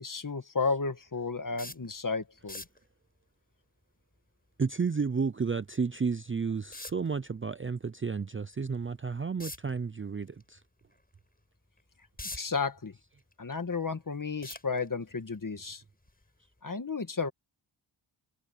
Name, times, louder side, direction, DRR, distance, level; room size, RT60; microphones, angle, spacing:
voice 1, 0.0-2.6 12.3-12.9 13.4-15.8 16.6-17.3, left 4 dB, 40° left, 2.0 m, -33 dB
sound 1, 1.6-1.9 2.4-2.8 5.6-5.7 6.7-7.1 9.4-9.7 10.2-10.4 10.9-11.0 11.8-12.6 13.1-13.8 14.4-15.1 16.0-16.2 16.6-16.7, left 1 dB, 20° left, 7.9 m, -42 dB
voice 2, 4.6-10.6, right 5 dB, 25° right, 0.5 m, -32 dB
wide cardioid pair, 90°, 49 cm